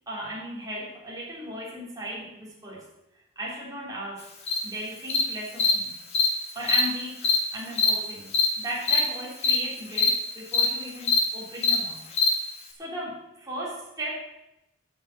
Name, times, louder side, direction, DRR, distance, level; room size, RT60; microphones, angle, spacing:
voice 1, 0.1-2.9 3.3-4.2 4.6-6.0 6.5-12.0 12.8-14.1, right 1 dB, 20° right, -5 dB, 3.4 m, -36 dB
Cricket, 4.5-4.6 5.1-5.2 5.6-5.7 6.1-6.3 6.6-6.8 7.2-7.4 7.8-7.9 8.3-8.5 8.8-9.0 9.4-9.6 9.9-10.1 10.5-10.7 11.0-11.2 11.6-11.8 12.1-12.3, left 5 dB, 35° left, 1.9 m, -21 dB
9.6 x 7.1 x 8.8 m, 0.89 s
head